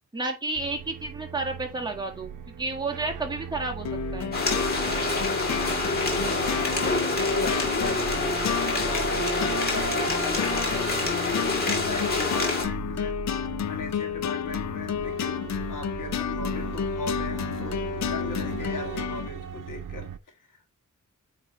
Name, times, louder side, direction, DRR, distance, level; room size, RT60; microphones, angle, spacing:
voice 1, 0.1-3.9 4.1-4.3, right 2 dB, 15° right, 1.6 m, -31 dB
sound 1, 0.5-20.2, right 8 dB, 85° right, 0.7 m, -37 dB
sound 2, 3.8-19.3, left 8 dB, 60° left, 0.5 m, -31 dB
sound 3, 4.3-12.6, left 3 dB, 30° left, 2.0 m, -27 dB
voice 2, 5.6-20.6, left 4 dB, 85° left, 1.9 m, -38 dB
8.3 x 3.3 x 4.2 m
wide cardioid pair, 145°, 31 cm